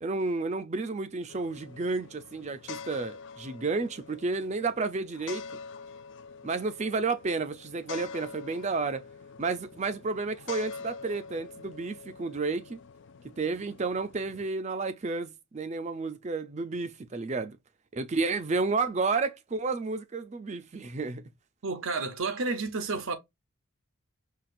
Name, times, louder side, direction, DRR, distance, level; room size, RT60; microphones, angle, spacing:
voice 1, 0.0-5.4 6.4-9.0 9.4-12.8 13.4-17.6 17.9-21.2, right 3 dB, 30° right, 0.4 m, -31 dB
sound 1, 1.3-14.5, left 5 dB, 55° left, 0.3 m, -45 dB
voice 2, 21.6-23.2, right 3 dB, 70° right, 0.7 m, -31 dB
5.7 x 2.4 x 2.5 m
head